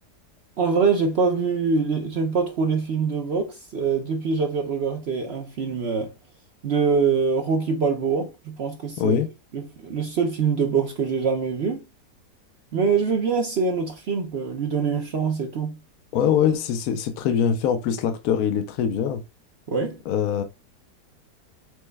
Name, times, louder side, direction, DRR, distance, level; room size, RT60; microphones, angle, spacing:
voice 1, 0.6-6.1 6.6-9.2 9.5-11.8 12.7-15.8 19.7-20.0, right 5 dB, 55° right, 0.7 m, -24 dB
voice 2, 9.0-9.3 16.1-19.2 20.1-20.4, left 8 dB, 70° left, 1.0 m, -23 dB
6.1 x 2.1 x 3.3 m
omnidirectional pair, 1.7 m